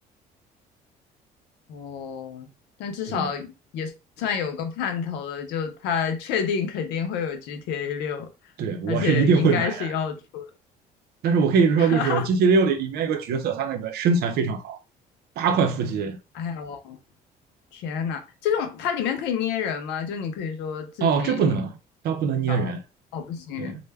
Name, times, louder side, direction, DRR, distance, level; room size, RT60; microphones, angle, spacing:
voice 1, 1.7-2.5 2.8-3.9 4.2-8.3 8.9-10.5 11.8-12.3 16.3-17.0 17.7-21.6 22.5-22.7 23.1-23.8, left 7 dB, 90° left, 0.6 m, -29 dB
voice 2, 8.6-9.9 11.2-14.8 15.4-16.2 21.0-21.7 22.0-22.8 23.6-23.7, right 5 dB, 70° right, 0.5 m, -22 dB
2.2 x 2.1 x 3.3 m
cardioid pair, 110°, 17 cm